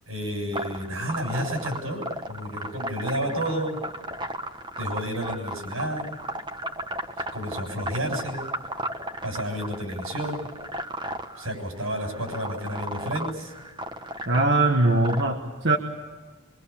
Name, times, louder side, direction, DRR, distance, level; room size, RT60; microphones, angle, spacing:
voice 1, 0.1-3.8 4.8-6.1 7.3-8.4 9.2-10.5 11.4-13.5, equal, 85° right, 4 dB, 7.4 m, -31 dB
sound 1, 0.5-15.2, right 1 dB, 20° right, 1.2 m, -35 dB
voice 2, 14.3-15.8, right 2 dB, 55° right, 3 dB, 1.4 m, -21 dB
24.5 x 24.0 x 7.2 m, 1.4 s
head